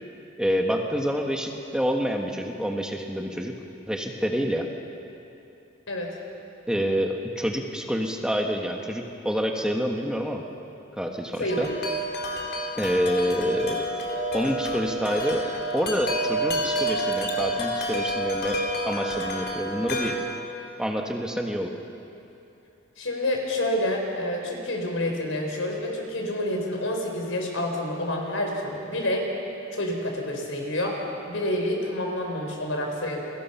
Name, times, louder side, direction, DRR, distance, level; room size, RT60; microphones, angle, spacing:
voice 1, 0.4-3.5 3.9-4.7 6.7-10.4 11.0-11.7 12.8-13.8 14.3-15.5 15.7-18.6 18.8-20.2 20.8-21.7, equal, 5° right, 2 dB, 1.4 m, -27 dB
Wind chime, 11.5-20.1, equal, 55° left, 3.4 m, -29 dB
voice 2, 23.0-29.3 29.7-31.0 31.3-33.2, left 1 dB, 80° left, 1 dB, 4.6 m, -28 dB
29.5 x 22.5 x 5.8 m, 2.8 s
head